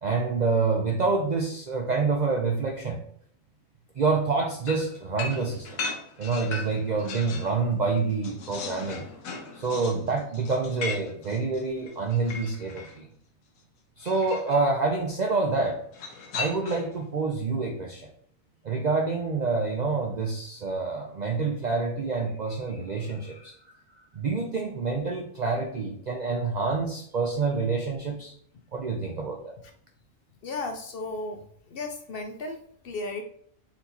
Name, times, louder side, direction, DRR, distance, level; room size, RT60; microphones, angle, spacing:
voice 1, 0.0-3.0 4.0-5.8 6.2-9.1 9.5-13.1 14.0-15.8 16.3-18.1 18.6-23.5 24.1-28.3 28.7-29.5, right 4 dB, 60° right, 2 dB, 0.4 m, -27 dB
sound 1, 4.7-7.6 7.9-13.0 14.0-14.6 15.9-17.0, left 4 dB, 85° left, 1.2 m, -37 dB
voice 2, 30.4-33.2, left 2 dB, 65° left, 4 dB, 0.6 m, -35 dB
4.3 x 2.8 x 3.9 m, 0.63 s
omnidirectional pair, 1.4 m